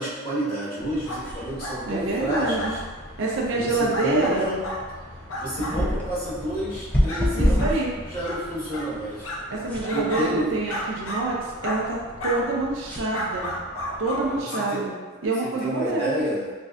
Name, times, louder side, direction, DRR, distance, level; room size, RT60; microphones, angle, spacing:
voice 1, 0.0-2.8 3.5-4.6 5.4-7.7 8.0-9.3 9.9-10.5 14.3-14.8 15.4-16.4, right 1 dB, 25° left, -12 dB, 1.5 m, -29 dB
sound 1, 0.8-14.4, equal, 5° left, 0.3 m, -31 dB
sound 2, 1.1-1.3 1.6-1.8 2.3-2.8 3.2-3.3 3.9-4.8 5.3-5.8 6.3-6.4 7.1-7.2 7.6-7.7 8.2-8.4 8.7-8.9 9.2-10.3 10.7-11.2 11.6-11.8 12.2-12.4 13.1-14.2 14.5-14.7 15.2-15.3, equal, 75° left, 0.5 m, -32 dB
voice 2, 1.9-2.8 3.2-4.5 7.3-7.9 9.5-13.5 14.0-15.0 15.2-16.2, right 3 dB, 65° right, -2 dB, 0.5 m, -27 dB
3.1 x 2.6 x 2.4 m, 1.4 s
head